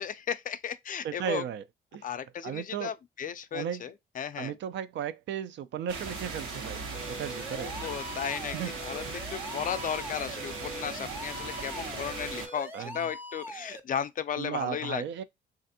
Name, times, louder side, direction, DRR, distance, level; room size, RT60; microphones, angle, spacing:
voice 1, 0.0-1.4 2.0-3.9 4.2-4.5 7.5-8.6 8.8-9.0 9.3-15.2, left 8 dB, 45° left, 0.4 m, -35 dB
voice 2, 1.0-1.6 1.9-2.1 2.4-2.9 3.5-3.9 4.4-6.8 7.1-7.7 8.5-8.8 9.0-9.1 12.7-13.1 14.4-15.2, right 9 dB, 65° right, 0.4 m, -35 dB
sound 1, 5.9-12.5, right 3 dB, 85° right, 1.1 m, -38 dB
sound 2, 6.9-13.8, equal, 10° right, 0.5 m, -42 dB
3.4 x 2.5 x 2.6 m
cardioid pair, 90°, 20 cm